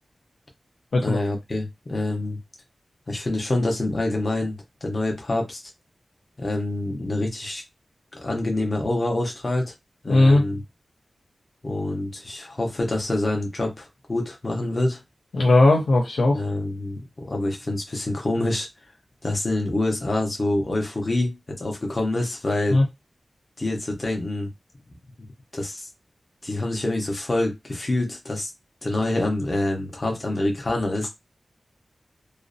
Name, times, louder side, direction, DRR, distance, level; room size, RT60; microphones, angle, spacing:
voice 1, 1.0-2.4 3.1-5.6 6.4-7.6 8.1-9.7 10.0-10.6 11.6-15.0 16.3-18.7 19.2-22.8 23.6-24.5 25.5-25.9 26.4-28.5 28.8-31.1, left 2 dB, 35° left, 1 dB, 0.6 m, -26 dB
voice 2, 10.1-10.4 15.3-16.4 22.7-22.8, left 2 dB, 85° left, -2 dB, 0.5 m, -17 dB
2.5 x 2.0 x 2.5 m, 0.20 s
wide cardioid pair, 110°, 0 cm